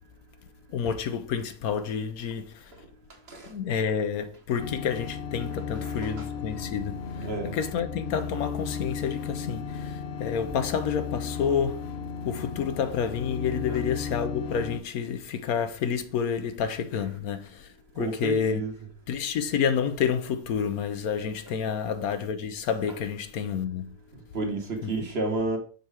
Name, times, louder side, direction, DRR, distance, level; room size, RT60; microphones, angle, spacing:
voice 1, 0.7-2.5 3.5-7.0 7.4-11.8 12.2-17.6 18.0-18.6 19.1-23.9 24.8-25.0, left 7 dB, 70° left, 1.1 m, -29 dB
sound 1, 4.6-14.8, left 6 dB, 55° left, 0.8 m, -35 dB
voice 2, 5.8-6.3 7.2-7.6 13.7-13.8 18.0-18.7 24.3-25.6, right 3 dB, 45° right, 1.4 m, -31 dB
6.6 x 4.5 x 4.8 m
omnidirectional pair, 1.6 m